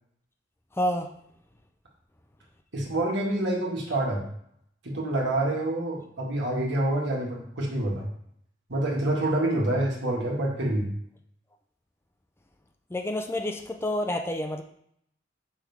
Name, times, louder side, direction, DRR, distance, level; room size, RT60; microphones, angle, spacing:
voice 1, 0.7-1.1 12.9-14.6, left 1 dB, 15° left, 4 dB, 0.5 m, -28 dB
voice 2, 2.7-4.2 4.8-8.1 8.7-10.9, right 1 dB, 65° right, -2 dB, 1.8 m, -27 dB
6.1 x 5.5 x 3.6 m, 0.70 s
head